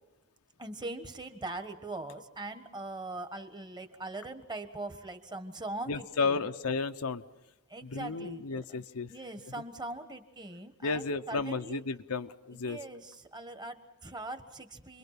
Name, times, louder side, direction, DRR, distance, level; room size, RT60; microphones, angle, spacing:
voice 1, 0.6-6.5 7.7-8.8 9.1-11.8 12.5-15.0, right 2 dB, 20° right, 8 dB, 1.3 m, -41 dB
voice 2, 5.9-7.2 7.8-9.1 10.8-12.8, left 4 dB, 90° left, 8 dB, 0.8 m, -33 dB
28.5 x 22.5 x 5.9 m, 0.97 s
head